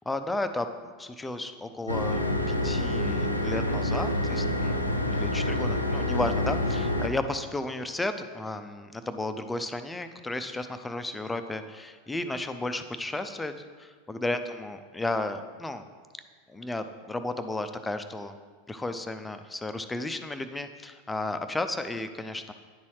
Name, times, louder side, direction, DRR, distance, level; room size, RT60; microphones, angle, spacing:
voice 1, 0.1-0.7 1.0-4.8 5.1-15.8 16.5-18.3 18.7-22.5, left 2 dB, 10° left, 9 dB, 0.4 m, -33 dB
sound 1, 1.9-7.1, left 1 dB, 90° left, 0.5 m, -27 dB
10.0 x 4.1 x 4.7 m, 1.5 s
figure-of-eight pair, 85°, 0 cm